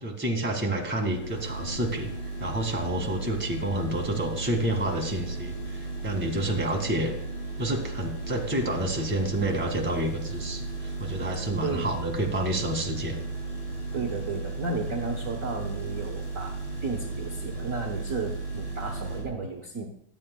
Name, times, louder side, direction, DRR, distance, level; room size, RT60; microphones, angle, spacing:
voice 1, 0.0-2.1 2.4-7.1 7.6-13.2, right 1 dB, 5° right, 1 dB, 1.6 m, -29 dB
sound 1, 0.8-19.2, right 3 dB, 65° left, 5.4 m, -35 dB
voice 2, 11.6-11.9 13.9-16.6 16.8-19.9, right 4 dB, 50° right, 2 dB, 1.1 m, -33 dB
23.5 x 8.4 x 2.3 m, 0.76 s
omnidirectional pair, 2.3 m